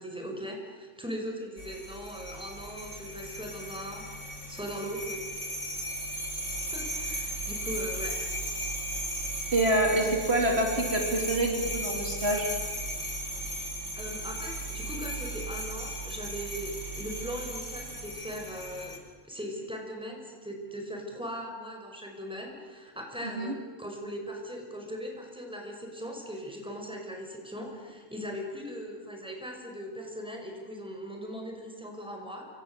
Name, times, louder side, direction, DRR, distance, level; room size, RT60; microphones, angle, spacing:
voice 1, 0.0-5.2 6.7-8.2 13.9-19.0 19.2-32.5, equal, 5° right, 2 dB, 5.5 m, -39 dB
sound 1, 1.6-19.0, right 1 dB, 65° left, 5.7 m, -36 dB
voice 2, 9.5-12.5 23.2-23.5, right 1 dB, 50° right, 1 dB, 4.2 m, -26 dB
28.5 x 26.0 x 8.0 m, 1.5 s
omnidirectional pair, 1.3 m